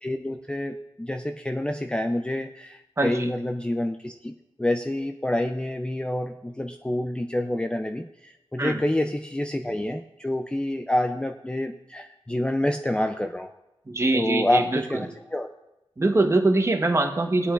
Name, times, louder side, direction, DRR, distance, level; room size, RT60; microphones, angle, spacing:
voice 1, 0.0-13.5 14.1-15.5, left 1 dB, 10° left, 5 dB, 0.4 m, -28 dB
voice 2, 13.9-14.8 16.0-17.5, right 2 dB, 25° right, 4 dB, 1.1 m, -22 dB
19.0 x 8.4 x 2.5 m, 0.95 s
wide cardioid pair, 125°, 11 cm